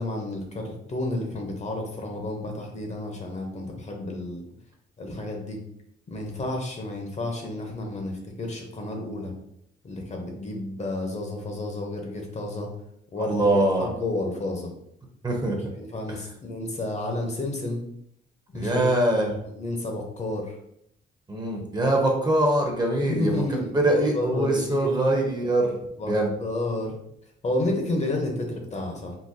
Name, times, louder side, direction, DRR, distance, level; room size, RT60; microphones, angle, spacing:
voice 1, 0.0-4.4 5.0-5.6 6.1-9.3 9.8-12.7 13.1-14.7 15.7-17.8 18.5-18.9 19.4-20.6 23.0-24.9 26.0-26.1 26.4-27.0 27.4-29.2, left 2 dB, 35° left, 2 dB, 0.7 m, -31 dB
voice 2, 13.2-13.9 15.2-15.6 18.5-19.3 21.3-23.4 23.7-25.7 26.0-26.3, right 1 dB, 20° right, 1 dB, 0.7 m, -23 dB
3.8 x 2.2 x 2.6 m, 0.73 s
cardioid pair, 90°, 20 cm